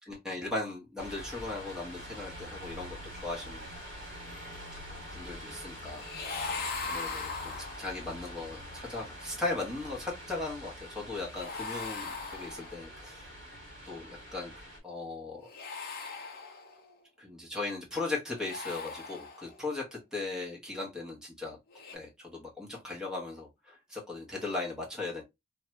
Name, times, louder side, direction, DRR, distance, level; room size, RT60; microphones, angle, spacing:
voice 1, 0.0-3.0 3.2-3.7 5.1-6.0 6.8-13.3 13.8-15.5 17.2-21.6 21.9-25.2, left 3 dB, 5° right, 1.1 m, -38 dB
sound 1, 1.0-14.8, equal, 40° right, 1.7 m, -45 dB
sound 2, 6.0-8.1 11.3-13.0 15.4-16.9 18.3-19.7 21.7-21.9, left 4 dB, 50° left, 0.7 m, -39 dB
2.8 x 2.3 x 2.8 m
head